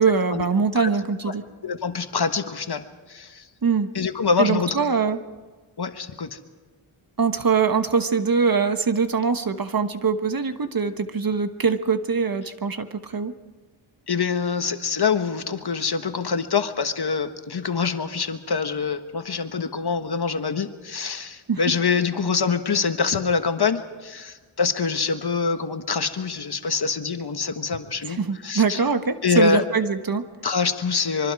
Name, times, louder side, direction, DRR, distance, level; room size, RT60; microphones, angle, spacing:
voice 1, 0.0-1.4 3.6-3.9 4.4-5.2 7.2-13.3 21.5-21.6 28.1-30.2, right 5 dB, 45° right, 9 dB, 1.3 m, -23 dB
voice 2, 1.6-3.5 3.9-4.8 5.8-6.4 14.1-28.8 29.2-29.6 30.4-31.3, left 5 dB, 50° left, 8 dB, 1.5 m, -25 dB
24.5 x 24.0 x 4.8 m, 1.4 s
cardioid pair, 60°, 49 cm